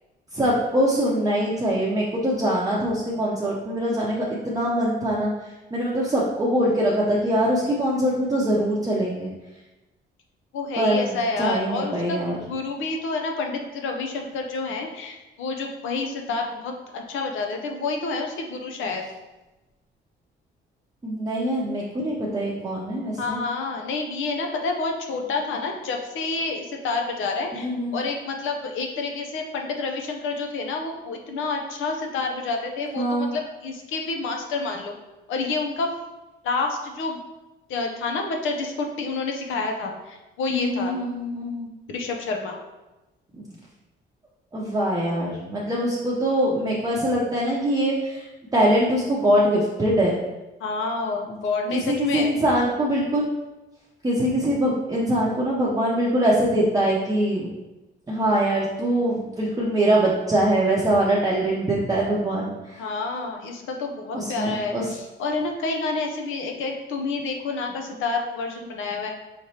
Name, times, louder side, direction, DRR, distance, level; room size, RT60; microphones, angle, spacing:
voice 1, 0.3-5.3 5.7-9.3 10.8-12.4 21.0-23.4 27.6-28.0 33.0-33.3 40.5-41.7 43.3-43.5 44.5-48.3 48.5-50.2 51.7-53.2 54.0-57.5 58.1-62.9 64.1-64.9, right 1 dB, 20° right, -6 dB, 0.7 m, -23 dB
voice 2, 10.5-19.0 23.2-34.9 35.3-35.9 36.4-37.2 37.7-41.0 41.9-42.6 50.6-52.3 62.8-69.1, left 3 dB, 85° left, 2 dB, 0.7 m, -29 dB
5.0 x 3.1 x 2.8 m, 1.1 s
cardioid pair, 90°, 20 cm